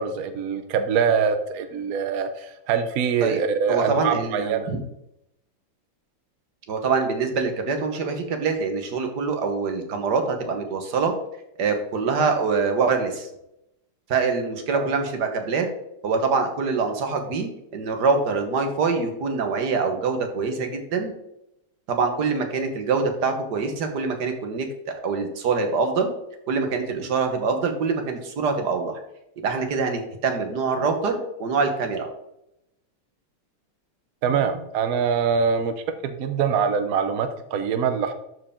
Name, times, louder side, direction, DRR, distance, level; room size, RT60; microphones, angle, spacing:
voice 1, 0.0-4.7 14.7-14.9 34.2-35.7 36.0-38.1, right 6 dB, 75° right, 8 dB, 0.8 m, -24 dB
voice 2, 3.7-4.8 6.7-11.1 11.6-13.3 14.1-15.7 16.0-21.1 21.9-24.7 25.0-26.1 26.5-29.0 29.4-32.1, right 4 dB, 55° right, 5 dB, 1.7 m, -24 dB
12.5 x 4.7 x 3.7 m, 0.82 s
omnidirectional pair, 2.4 m